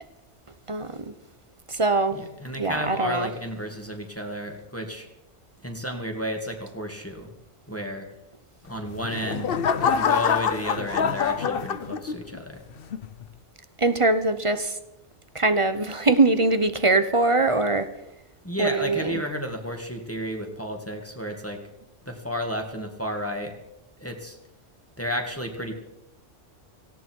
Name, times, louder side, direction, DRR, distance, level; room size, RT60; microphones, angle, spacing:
voice 1, 0.7-1.1 1.7-2.2 2.6-3.3 13.8-14.8 15.3-17.9 18.6-19.2, right 2 dB, 30° right, 11 dB, 0.9 m, -22 dB
voice 2, 2.1-5.1 5.6-7.3 7.7-8.1 8.7-12.6 18.4-21.6 22.1-23.5 24.0-24.4 25.0-25.7, equal, 10° left, 3 dB, 2.1 m, -32 dB
sound 1, 8.8-12.4 12.9-13.3, left 7 dB, 55° left, 0.9 m, -25 dB
18.0 x 16.5 x 4.6 m, 0.89 s
omnidirectional pair, 1.3 m